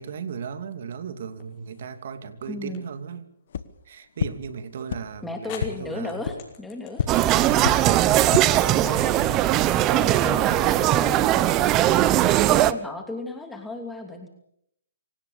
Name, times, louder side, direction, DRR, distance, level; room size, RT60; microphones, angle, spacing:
voice 1, 0.0-3.3 3.9-6.3 7.4-8.2 8.7-9.6 10.5-10.7, right 6 dB, 55° right, 10 dB, 2.7 m, -36 dB
sound 1, 1.4-2.0 2.7-2.9 4.7-4.8 5.5-11.7, left 8 dB, 30° left, 5.6 m, -46 dB
voice 2, 2.5-2.9 5.2-7.1 8.7-9.3 9.8-14.3, left 2 dB, 5° left, 3 dB, 2.8 m, -35 dB
sound 2, 3.5-3.6 4.2-4.3 4.9-5.0 5.6-5.7 6.2-6.3 6.9-7.0 7.6-7.7 8.2-8.4, left 8 dB, 55° left, 1.5 m, -25 dB
sound 3, 7.1-12.7, right 14 dB, 25° right, 0.9 m, -20 dB
26.0 x 18.0 x 7.0 m, 0.71 s
hypercardioid pair, 145°, 0 cm